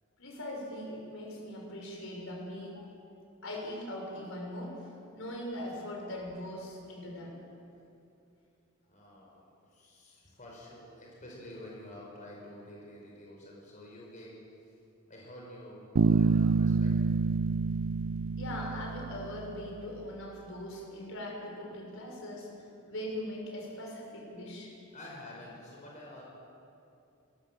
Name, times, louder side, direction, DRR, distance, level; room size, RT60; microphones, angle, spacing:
voice 1, 0.2-2.9 3.4-4.8 5.1-7.3 18.4-22.5 22.9-24.7, left 1 dB, 65° left, -1 dB, 6.4 m, -40 dB
voice 2, 8.9-14.4 15.1-16.9 24.9-26.2, left 1 dB, 40° left, -3 dB, 5.2 m, -49 dB
Bass guitar, 16.0-19.7, right 4 dB, 65° right, 0.5 m, -27 dB
24.0 x 22.5 x 7.4 m, 2.7 s
head